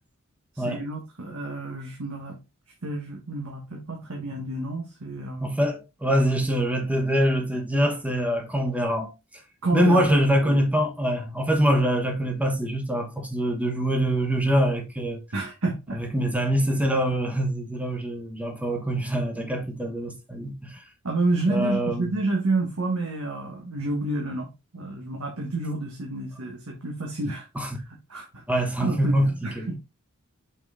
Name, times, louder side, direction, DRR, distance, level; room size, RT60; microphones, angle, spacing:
voice 1, 0.5-2.4 2.8-5.5 9.6-10.0 10.4-10.6 15.3-16.0 21.0-27.5 28.1-29.7, right 2 dB, 80° right, 1.4 m, -29 dB
voice 2, 5.4-9.1 9.7-15.2 16.0-20.8 21.5-22.1 27.5-27.8 28.5-29.7, equal, 5° right, 1.1 m, -24 dB
5.9 x 4.6 x 3.5 m
head